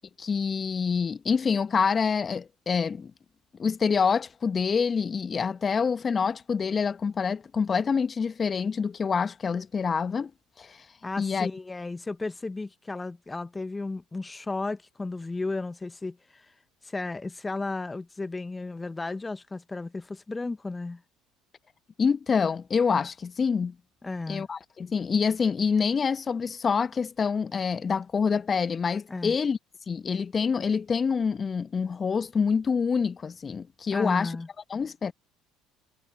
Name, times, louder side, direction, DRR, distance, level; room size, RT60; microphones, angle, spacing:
voice 1, 0.2-3.1 3.6-10.3 10.6-10.8 11.2-11.5 22.0-23.7 24.3-29.6 29.9-34.3 34.7-35.1, left 5 dB, 35° left, 1.3 m, -26 dB
voice 2, 11.0-16.5 16.8-21.0 24.0-24.5 29.1-29.3 33.9-34.5, left 3 dB, 20° left, 1.1 m, -34 dB
hypercardioid pair, 60°, 0 cm